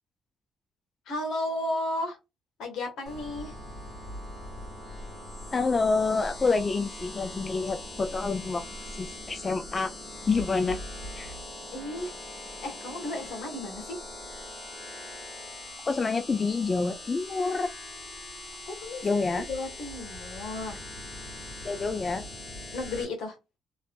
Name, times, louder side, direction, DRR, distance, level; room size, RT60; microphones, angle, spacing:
voice 1, 1.1-2.2 2.6-3.6 11.7-12.1 12.6-14.0 18.7-19.2 19.5-20.8 22.7-23.4, left 2 dB, 80° left, 1.3 m, -34 dB
sound 1, 3.1-23.1, left 1 dB, 55° left, 1.8 m, -41 dB
voice 2, 5.5-8.6 9.0-9.9 10.2-10.8 11.1-11.3 15.9-17.7 19.0-19.4 21.6-22.2, left 4 dB, 35° left, 0.4 m, -27 dB
3.2 x 2.6 x 2.3 m
cardioid pair, 90°, 0 cm